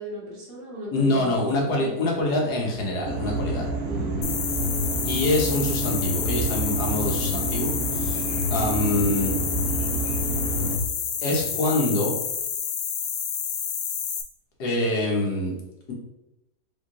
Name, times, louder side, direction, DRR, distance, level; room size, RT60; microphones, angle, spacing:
voice 1, 0.0-1.9 3.8-4.3, right 2 dB, 35° right, -7 dB, 1.4 m, -36 dB
voice 2, 0.9-3.7 5.0-8.2 8.5-9.3 11.2-12.2 14.6-15.6, left 2 dB, 65° left, -1 dB, 1.5 m, -25 dB
sound 1, 3.0-10.8, right 1 dB, 55° right, 0.7 m, -28 dB
sound 2, 4.2-14.2, left 7 dB, 85° left, 1.3 m, -29 dB
3.6 x 3.5 x 3.7 m, 0.92 s
omnidirectional pair, 1.9 m